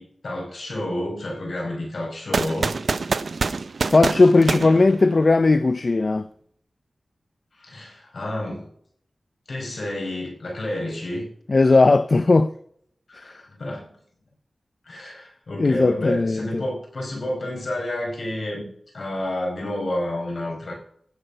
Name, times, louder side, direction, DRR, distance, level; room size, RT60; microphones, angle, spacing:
voice 1, 0.0-2.7 7.5-8.7 9.5-11.3 13.1-13.9 14.8-18.7 18.9-20.7, left 1 dB, 75° left, 5.2 m, -30 dB
sound 1, 2.3-5.5, right 4 dB, 75° right, 0.5 m, -26 dB
voice 2, 3.9-6.3 11.5-12.5 15.6-16.6, left 3 dB, 55° left, 0.5 m, -17 dB
15.5 x 6.0 x 5.6 m
cardioid pair, 55°, 0 cm